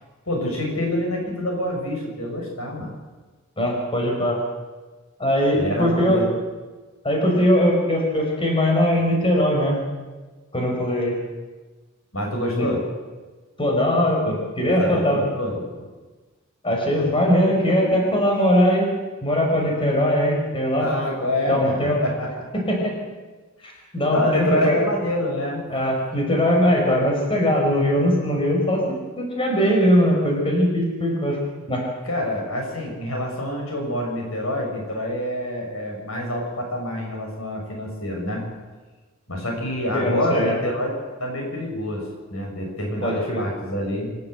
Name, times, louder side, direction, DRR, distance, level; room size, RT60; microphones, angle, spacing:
voice 1, 0.3-2.9 5.5-6.3 12.1-12.8 14.6-15.9 20.8-22.5 24.1-25.6 32.0-38.4 39.3-44.1, left 1 dB, 80° left, 0 dB, 6.9 m, -27 dB
voice 2, 3.6-4.4 5.2-6.2 7.0-9.8 10.5-11.2 12.6-12.7 13.6-15.2 16.6-18.9 19.2-20.9 21.5-22.0 22.5-22.9 23.6-24.8 25.7-31.4 31.7-31.8 39.9-40.6 43.0-43.4, equal, 25° left, 0 dB, 5.3 m, -20 dB
26.5 x 13.5 x 8.2 m, 1.3 s
head